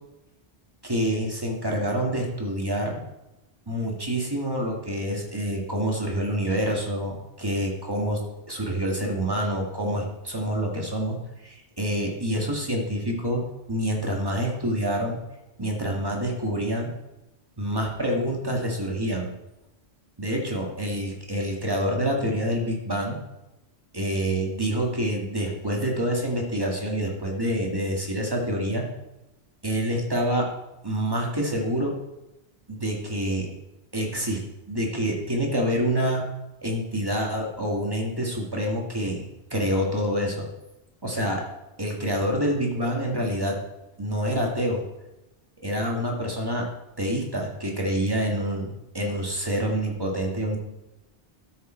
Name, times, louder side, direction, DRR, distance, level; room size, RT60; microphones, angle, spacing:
voice 1, 0.8-3.1 3.7-8.2 8.5-15.2 15.6-16.9 17.6-19.3 20.2-23.2 23.9-28.8 29.6-30.5 30.8-32.0 32.7-33.5 33.9-34.4 34.7-36.3 36.6-40.5 41.0-41.4 41.8-43.6 44.0-44.8 45.6-46.7 47.0-48.7 48.9-50.6, equal, 20° right, -1 dB, 1.9 m, -27 dB
12.5 x 6.5 x 4.4 m, 0.96 s
omnidirectional pair, 1.1 m